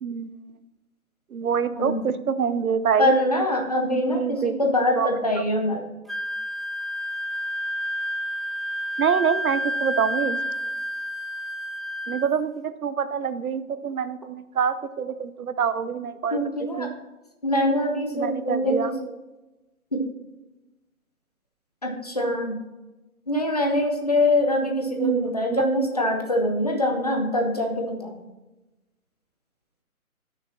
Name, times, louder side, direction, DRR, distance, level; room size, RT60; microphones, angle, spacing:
voice 1, 0.0-0.4 1.3-3.1 3.9-5.1 5.4-5.5 9.0-10.4 12.1-16.4 16.8-16.9 18.1-18.9 25.0-25.6, right 7 dB, 80° right, 13 dB, 0.7 m, -26 dB
voice 2, 3.0-5.9 16.3-16.9 17.4-19.0 19.9-20.1 21.8-22.6 23.3-28.2, left 1 dB, 25° left, 2 dB, 0.7 m, -24 dB
Wind instrument woodwind instrument, 6.1-12.3, equal, ahead, 0.3 m, -30 dB
10.0 x 6.4 x 4.2 m, 1.1 s
hypercardioid pair, 180°, 43 cm